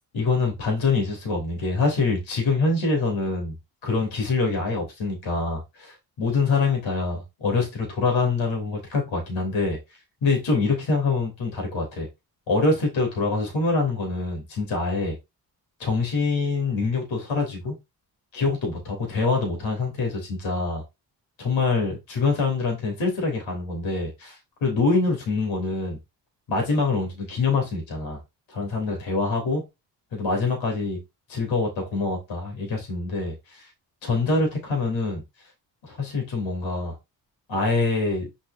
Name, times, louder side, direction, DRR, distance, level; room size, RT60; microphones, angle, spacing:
voice 1, 0.1-3.5 3.8-9.8 10.2-12.1 12.5-15.2 15.8-17.7 18.3-20.8 21.4-26.0 26.5-28.2 28.5-29.6 30.2-31.0 31.3-33.7 34.0-35.2 35.8-36.9 37.5-38.3, left 3 dB, 85° left, 3.3 m, -25 dB
6.3 x 6.2 x 2.7 m
supercardioid pair, 55°, 45 cm